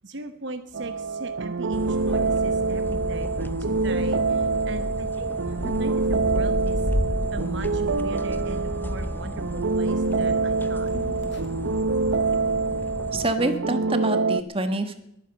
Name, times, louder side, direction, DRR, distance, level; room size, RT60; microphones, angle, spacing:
voice 1, 0.0-5.3 5.7-6.8 7.3-10.9, right 2 dB, 65° right, 9 dB, 1.1 m, -38 dB
sound 1, 0.7-14.4, right 4 dB, 85° right, 0.8 m, -26 dB
sound 2, 0.8-1.5 1.8-1.9 2.1-2.7 3.3-3.5 3.8-3.9 4.7-4.8 5.4-10.2 10.5-12.2 12.5-12.6, equal, 60° left, 2.3 m, -32 dB
sound 3, 1.7-13.3, left 1 dB, 10° left, 0.6 m, -35 dB
voice 2, 13.1-14.9, right 2 dB, 30° right, 8 dB, 1.5 m, -26 dB
21.5 x 9.6 x 6.9 m, 0.80 s
head